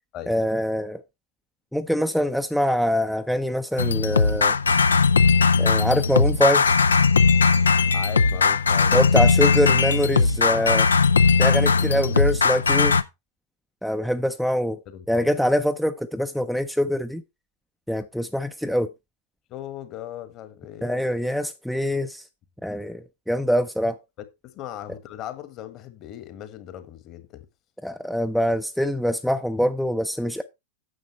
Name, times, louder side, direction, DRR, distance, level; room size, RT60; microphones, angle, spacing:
voice 1, 0.3-1.0 1.7-4.5 5.6-6.6 8.9-10.9 11.4-13.0 13.8-14.8 15.1-17.2 17.9-18.9 20.8-22.3 22.6-24.0 27.8-30.4, equal, ahead, 0.6 m, -24 dB
sound 1, 3.8-13.0, left 4 dB, 75° left, 0.6 m, -19 dB
voice 2, 7.9-9.0 10.4-10.8 11.7-12.2 14.9-15.3 19.5-21.0 24.2-27.4, left 11 dB, 35° left, 1.5 m, -38 dB
9.6 x 7.2 x 4.4 m
figure-of-eight pair, 90°, 0 cm